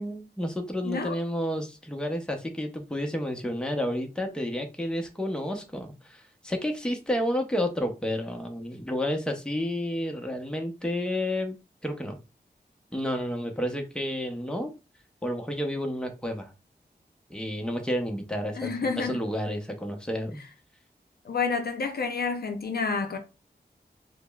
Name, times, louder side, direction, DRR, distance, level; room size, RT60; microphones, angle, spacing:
voice 1, 0.0-11.6 11.8-12.2 12.9-14.7 15.2-16.5 17.3-18.7 19.0-20.4, left 1 dB, 5° left, 0.6 m, -30 dB
voice 2, 0.9-1.2 18.5-19.2 21.2-23.2, left 4 dB, 60° left, 0.5 m, -29 dB
5.0 x 2.0 x 2.2 m
wide cardioid pair, 100°, 18 cm